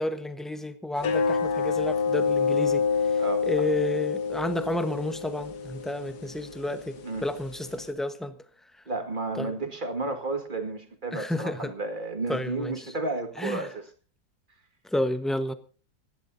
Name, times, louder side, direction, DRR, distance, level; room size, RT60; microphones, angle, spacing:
voice 1, 0.0-2.8 3.1-8.3 9.3-9.5 11.1-11.7 12.3-12.9 13.4-13.7 14.8-15.5, left 1 dB, ahead, 9 dB, 0.8 m, -31 dB
sound 1, 1.0-7.9, left 5 dB, 60° left, 1.8 m, -28 dB
voice 2, 8.9-13.8, right 2 dB, 25° right, 5 dB, 2.1 m, -32 dB
27.0 x 11.5 x 2.7 m, 0.37 s
omnidirectional pair, 2.0 m